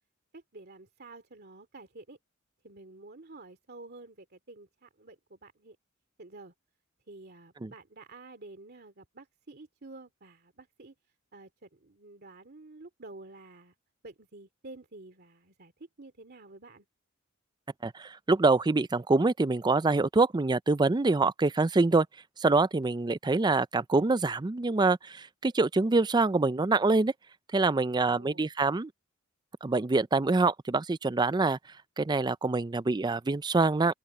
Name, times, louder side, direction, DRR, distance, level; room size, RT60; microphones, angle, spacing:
voice 1, 0.3-2.2 2.6-5.8 6.2-6.5 7.1-10.9 11.3-13.7 14.0-15.7 16.0-16.8 28.0-28.5, right 2 dB, 50° right, 2.5 m, -50 dB
voice 2, 17.8-22.1 22.4-27.1 27.5-28.9 29.6-31.6 32.0-34.0, right 3 dB, 20° right, 0.4 m, -25 dB
open air
head